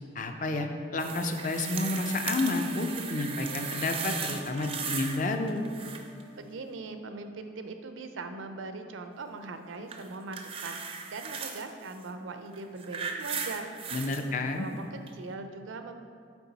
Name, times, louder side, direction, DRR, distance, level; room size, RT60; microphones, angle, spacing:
voice 1, 0.2-0.7 0.9-5.6 13.9-14.7, left 2 dB, 40° left, 5 dB, 0.4 m, -30 dB
sound 1, 1.0-5.2 5.5-6.2 9.9-11.6 12.5-14.2 15.1-15.2, right 6 dB, 30° right, 0.4 m, -37 dB
Wind instrument woodwind instrument, 1.5-6.9, left 3 dB, 65° left, 0.8 m, -49 dB
voice 2, 6.4-15.9, right 3 dB, 85° right, 7 dB, 0.5 m, -41 dB
7.0 x 4.6 x 4.0 m, 2.2 s
head